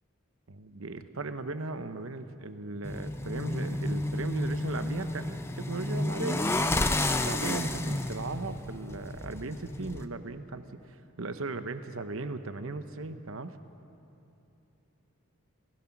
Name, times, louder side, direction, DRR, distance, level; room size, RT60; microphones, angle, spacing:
voice 1, 0.5-6.7 7.1-13.6, right 3 dB, 65° right, 10 dB, 0.9 m, -37 dB
sound 1, 2.8-10.1, left 1 dB, 10° left, 0.6 m, -31 dB
30.0 x 16.5 x 6.0 m, 2.9 s
head